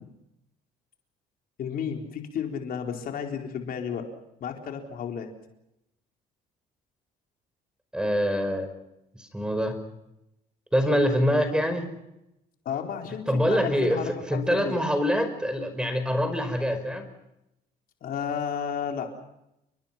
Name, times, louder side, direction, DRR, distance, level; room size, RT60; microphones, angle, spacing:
voice 1, 1.6-4.1 4.4-5.3 12.6-14.1 14.5-14.8 18.0-19.1, left 7 dB, 60° left, 3 dB, 4.3 m, -32 dB
voice 2, 7.9-8.7 9.2-9.7 10.7-11.9 13.3-17.1, equal, 5° right, 9 dB, 5.3 m, -25 dB
30.0 x 23.0 x 5.9 m, 0.87 s
cardioid pair, 110°, 17 cm